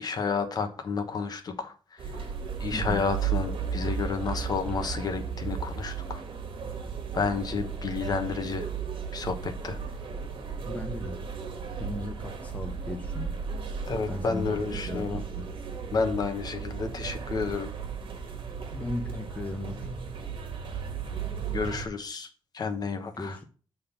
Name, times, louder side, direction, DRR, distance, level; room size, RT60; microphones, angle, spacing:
voice 1, 0.0-2.0 2.6-6.2 7.1-8.7 9.1-9.8 13.9-15.2 15.9-17.7 21.5-22.3 22.5-23.4, left 5 dB, 50° left, 1.1 m, -31 dB
sound 1, 2.0-21.8, right 6 dB, 70° right, 1.6 m, -35 dB
voice 2, 10.6-11.2 11.8-13.4 14.1-15.5 18.7-20.0 23.1-23.4, left 2 dB, 15° left, 0.7 m, -36 dB
8.5 x 3.8 x 5.5 m
wide cardioid pair, 175°, 9 cm